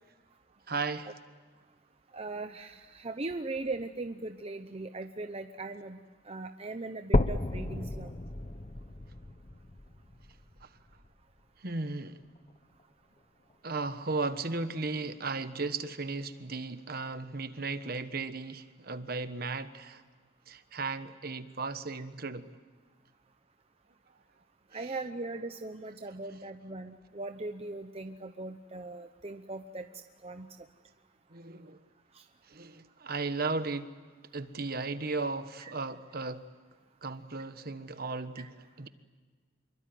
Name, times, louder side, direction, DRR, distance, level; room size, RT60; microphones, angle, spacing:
voice 1, 0.7-1.1 10.6-10.7 11.6-12.2 13.6-20.0 20.5-22.5 31.3-31.8 32.5-33.9 34.3-36.4 37.0-38.9, right 3 dB, 50° right, 1.3 m, -35 dB
voice 2, 2.1-6.0 6.3-8.1 24.7-29.9 30.2-30.5 32.1-32.2 35.6-35.7, right 2 dB, 30° right, 0.9 m, -39 dB
sound 1, 7.1-11.1 11.7-11.8 12.4-12.5 12.8-12.9 13.7-13.8, left 1 dB, 30° left, 0.9 m, -32 dB
26.5 x 23.5 x 9.4 m
head